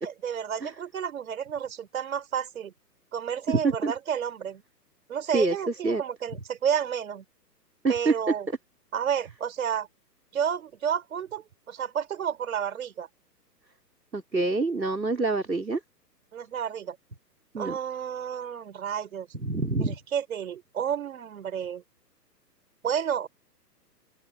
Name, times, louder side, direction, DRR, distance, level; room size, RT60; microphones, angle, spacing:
voice 1, 0.0-2.7 3.1-4.6 5.1-7.2 7.9-8.5 8.9-9.9 10.3-13.1 16.3-17.0 17.6-19.3 19.8-21.8 22.8-23.3, right 8 dB, 55° right, 4.8 m, -31 dB
voice 2, 3.5-3.9 5.3-6.0 7.8-8.1 8.5-8.6 14.1-15.8 17.5-17.8 19.3-20.0, right 3 dB, 85° right, 3.9 m, -26 dB
open air
figure-of-eight pair, 120°, 49 cm